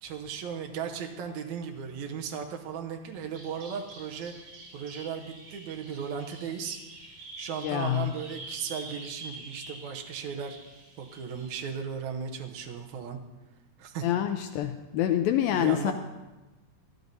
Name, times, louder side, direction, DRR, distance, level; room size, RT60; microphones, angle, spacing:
voice 1, 0.0-4.3 4.7-6.8 7.4-10.6 11.0-13.2 13.8-14.0 15.5-15.9, right 7 dB, 85° right, 3 dB, 1.6 m, -36 dB
Bird vocalization bird call bird song, 3.3-11.7, right 2 dB, 65° right, 3.8 m, -47 dB
voice 2, 7.6-8.1 14.0-15.9, left 11 dB, 85° left, 7 dB, 2.1 m, -26 dB
13.5 x 12.0 x 4.0 m, 1.1 s
omnidirectional pair, 4.6 m